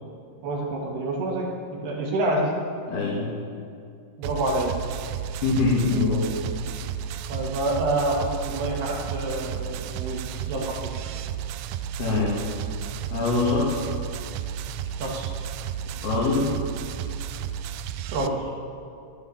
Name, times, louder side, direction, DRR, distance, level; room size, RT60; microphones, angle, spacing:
voice 1, 0.4-2.5 4.2-4.8 7.3-10.9 15.0-15.3 18.1-18.4, right 1 dB, 65° right, -1 dB, 3.6 m, -27 dB
voice 2, 2.9-3.3 5.4-6.3 12.0-12.4 13.1-13.8 16.0-16.5, left 3 dB, 65° left, -7 dB, 4.2 m, -23 dB
sound 1, 4.2-18.3, right 9 dB, 85° right, 2.3 m, -33 dB
13.0 x 11.5 x 7.2 m, 2.4 s
omnidirectional pair, 5.2 m